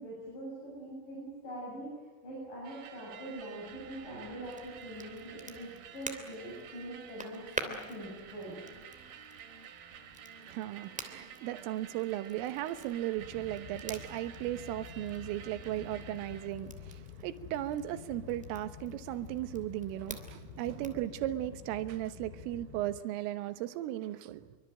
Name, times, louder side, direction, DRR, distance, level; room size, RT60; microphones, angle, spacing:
voice 1, 0.0-1.9 2.2-8.6, right 1 dB, 40° left, 9.0 m, -43 dB
sound 1, 2.6-16.5, right 7 dB, 60° right, 3.3 m, -51 dB
Crackle, 4.4-21.1, right 1 dB, 5° right, 1.0 m, -48 dB
voice 2, 10.4-24.6, right 14 dB, 90° right, 3.8 m, -36 dB
sound 2, 13.2-23.0, left 9 dB, 80° left, 4.0 m, -49 dB
25.5 x 24.5 x 9.2 m
omnidirectional pair, 5.7 m